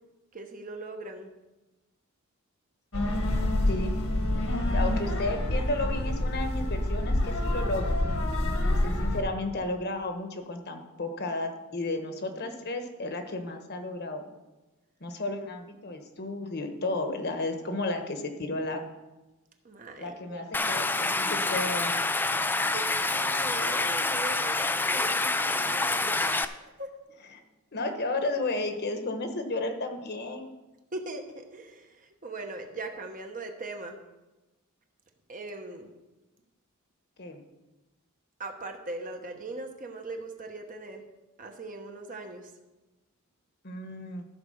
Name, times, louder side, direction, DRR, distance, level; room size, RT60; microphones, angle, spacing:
voice 1, 0.3-1.3 19.6-20.4 22.5-26.9 30.9-34.0 35.3-35.9 38.4-41.0 41.4-42.5, right 2 dB, 40° right, 4 dB, 1.1 m, -40 dB
sound 1, 2.9-9.2, left 1 dB, 70° left, 1.6 m, -27 dB
voice 2, 4.4-7.9 8.7-14.3 15.0-18.8 20.0-22.1 27.3-27.4 27.7-30.5 37.2-37.4 43.6-44.2, left 2 dB, 50° left, 6 dB, 1.2 m, -33 dB
Stream, 20.5-26.4, left 2 dB, 10° left, 0.3 m, -27 dB
14.0 x 4.8 x 6.5 m, 1.1 s
head